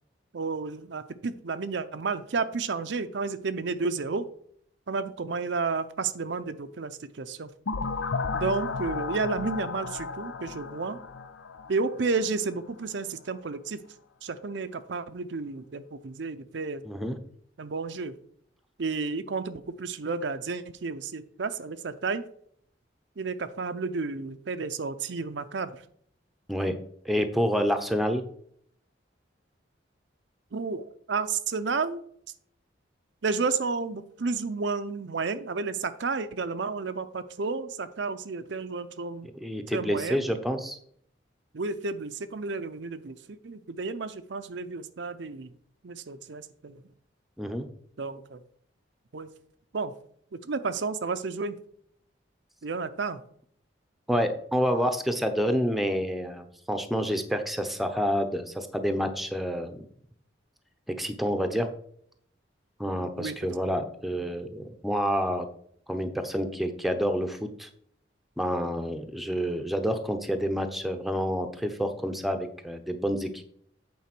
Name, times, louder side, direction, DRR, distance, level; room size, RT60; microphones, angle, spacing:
voice 1, 0.3-4.3 4.9-7.5 8.3-11.0 11.7-13.8 14.2-16.8 17.6-18.1 18.8-22.3 23.2-25.7 30.5-32.0 33.2-39.3 39.7-40.2 41.5-45.5 45.8-46.8 48.0-48.4 49.1-49.3 49.7-49.9 50.4-51.6 52.6-53.2 63.2-63.3, right 4 dB, 75° right, 10 dB, 0.6 m, -31 dB
sound 1, 7.7-12.4, left 4 dB, 85° left, 0.6 m, -34 dB
voice 2, 16.8-17.2 26.5-26.8 27.0-28.2 39.4-40.8 47.4-47.7 54.1-59.8 61.0-61.7 62.8-65.5 65.9-67.7 68.4-73.4, equal, ahead, 7 dB, 0.7 m, -28 dB
8.6 x 4.1 x 6.0 m, 0.63 s
head